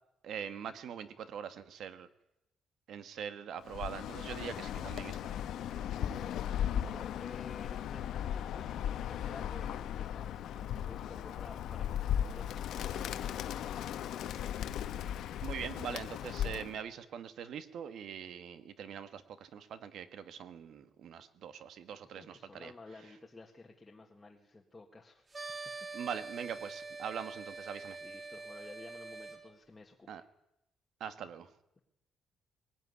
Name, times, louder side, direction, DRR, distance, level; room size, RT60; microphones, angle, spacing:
voice 1, 0.2-2.1 2.9-5.4 5.7-5.9 15.4-22.7 25.9-28.0 30.1-30.2 31.0-31.5, right 8 dB, 55° right, 11 dB, 1.7 m, -43 dB
Bird, 3.7-16.8, left 10 dB, 70° left, 1.3 m, -37 dB
voice 2, 5.9-13.1 22.1-25.3 28.0-30.2, left 3 dB, 15° left, 0 dB, 1.8 m, -53 dB
sound 1, 25.3-29.4, right 3 dB, 20° right, 3.3 m, -45 dB
21.5 x 18.0 x 9.7 m, 0.86 s
cardioid pair, 175°, 0 cm